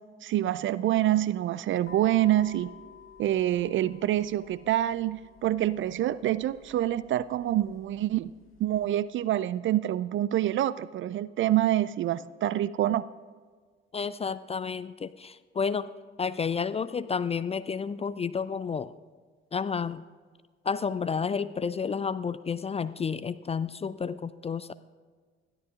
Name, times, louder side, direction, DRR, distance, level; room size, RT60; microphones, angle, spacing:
voice 1, 0.2-2.7 3.2-8.3 8.6-13.0, right 13 dB, 40° right, 18 dB, 0.4 m, -26 dB
sound 1, 1.8-8.8, left 7 dB, 45° left, 1.8 m, -53 dB
voice 2, 13.9-15.9 16.2-18.9 19.5-20.0 20.7-24.7, left 6 dB, 20° left, 15 dB, 0.4 m, -31 dB
21.0 x 13.5 x 2.4 m, 1.5 s
figure-of-eight pair, 45°, 30 cm